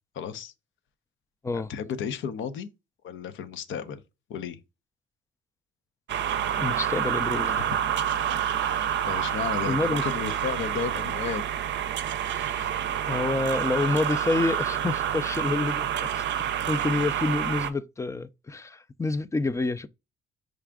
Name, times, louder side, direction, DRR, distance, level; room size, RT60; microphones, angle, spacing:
voice 1, 0.1-0.5 1.5-2.7 3.0-4.0 4.3-4.6 9.1-11.5 12.2-12.4, left 7 dB, 75° left, 0.7 m, -33 dB
sound 1, 6.1-17.7, right 9 dB, 65° right, 0.5 m, -28 dB
voice 2, 6.6-7.6 9.6-10.0 12.3-12.7 13.1-16.2 16.7-19.9, left 3 dB, 15° left, 0.4 m, -28 dB
4.9 x 2.4 x 3.4 m
cardioid pair, 90°, 20 cm